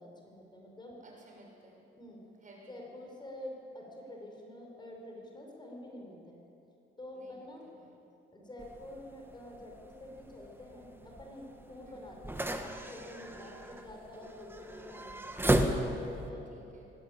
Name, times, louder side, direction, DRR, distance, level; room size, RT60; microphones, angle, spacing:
voice 1, 0.0-1.0 2.0-2.2 2.7-6.4 7.0-7.6 8.3-15.6 16.1-16.5, left 1 dB, 20° left, 0 dB, 5.1 m, -48 dB
voice 2, 1.0-1.8 2.4-2.7 7.1-7.9 11.8-12.0 13.4-13.8 16.5-16.8, right 2 dB, 40° right, -1 dB, 6.5 m, -57 dB
sound 1, 8.6-16.3, right 1 dB, 10° right, 1.7 m, -35 dB
19.0 x 17.0 x 8.8 m, 2.9 s
cardioid pair, 90°, 20 cm